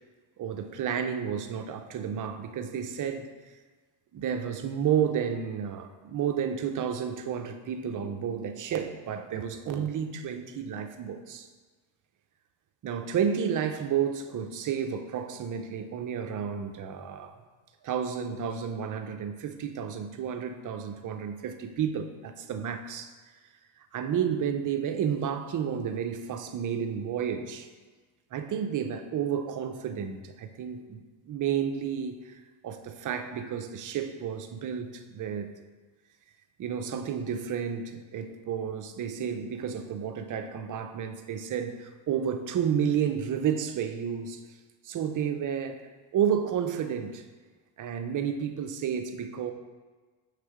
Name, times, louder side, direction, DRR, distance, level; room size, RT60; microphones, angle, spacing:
voice 1, 0.4-3.3 4.1-11.5 12.8-17.3 17.8-23.1 23.9-27.7 28.3-32.4 32.6-35.5 36.6-44.4 44.8-45.8 46.1-47.2 47.8-49.5, right 8 dB, 40° right, 7 dB, 0.5 m, -31 dB
6.3 x 3.3 x 4.7 m, 1.4 s
cardioid pair, 100°, 49 cm